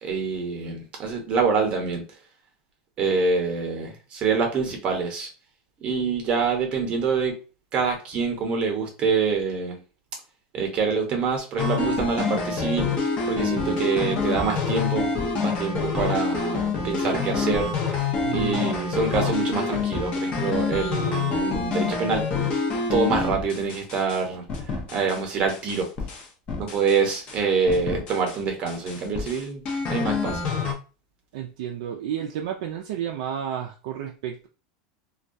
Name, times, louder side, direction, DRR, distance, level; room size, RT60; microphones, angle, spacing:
voice 1, 0.0-2.0 3.0-5.3 5.8-7.4 7.7-9.8 10.5-12.9 13.3-15.1 15.4-22.2 22.9-25.9 26.6-30.5, right 5 dB, 35° right, 3 dB, 0.8 m, -26 dB
sound 1, 11.6-24.2 24.5-25.2 25.5-27.4 27.7-28.4 28.7-30.7, left 4 dB, 35° left, 0.6 m, -27 dB
voice 2, 13.5-13.9 18.2-18.7 31.3-34.5, right 9 dB, 75° right, 1 dB, 0.3 m, -32 dB
2.2 x 2.2 x 2.6 m, 0.34 s
supercardioid pair, 145°, 3 cm